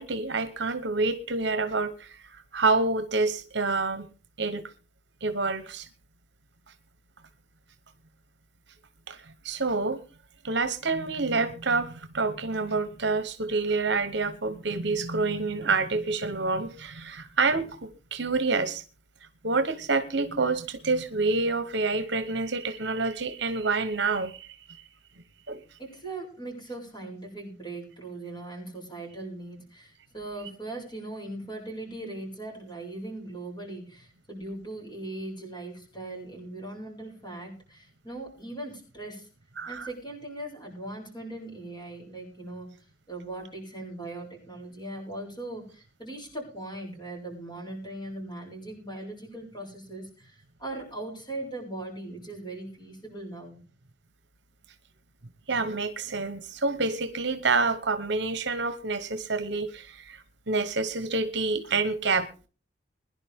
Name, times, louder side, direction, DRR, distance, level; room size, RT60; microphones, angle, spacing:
voice 1, 0.0-4.1 4.4-4.6 5.2-5.9 9.1-10.0 10.4-18.8 19.4-24.8 25.5-25.6 39.6-39.9 55.5-62.5, right 3 dB, 60° right, 10 dB, 1.1 m, -28 dB
voice 2, 25.8-39.3 39.7-53.6, right 2 dB, 20° left, -1 dB, 7.5 m, -39 dB
21.5 x 11.0 x 3.6 m, 0.36 s
head